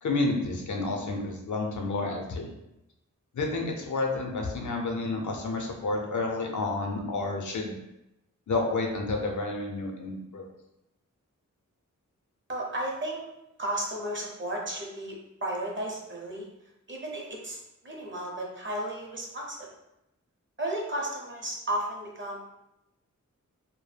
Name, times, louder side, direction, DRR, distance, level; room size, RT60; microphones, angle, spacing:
voice 1, 0.0-2.5 3.3-7.7 8.5-10.5, left 3 dB, 70° left, 1 dB, 0.5 m, -30 dB
voice 2, 12.5-13.2 13.6-16.5 16.9-19.7 20.6-22.5, right 1 dB, 40° right, -2 dB, 0.6 m, -34 dB
2.1 x 2.0 x 3.2 m, 0.87 s
wide cardioid pair, 85°, 31 cm